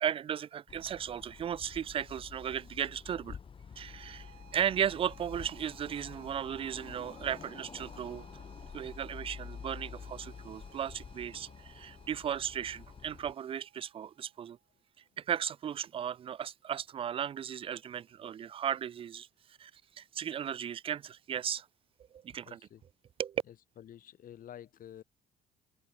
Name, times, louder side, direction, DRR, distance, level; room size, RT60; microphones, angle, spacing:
voice 1, 0.0-3.4 3.8-8.3 8.7-14.6 15.2-19.3 19.6-19.7 20.0-21.7 22.1-22.6 23.2-23.4, right 9 dB, 35° right, 0.4 m, -36 dB
sound 1, 0.7-13.3, left 6 dB, 30° left, 1.1 m, -49 dB
sound 2, 3.7-14.8, right 13 dB, 65° right, 4.9 m, -61 dB
voice 2, 22.5-22.8 23.5-25.0, left 10 dB, 55° left, 2.7 m, -50 dB
cardioid pair, 110°, 17 cm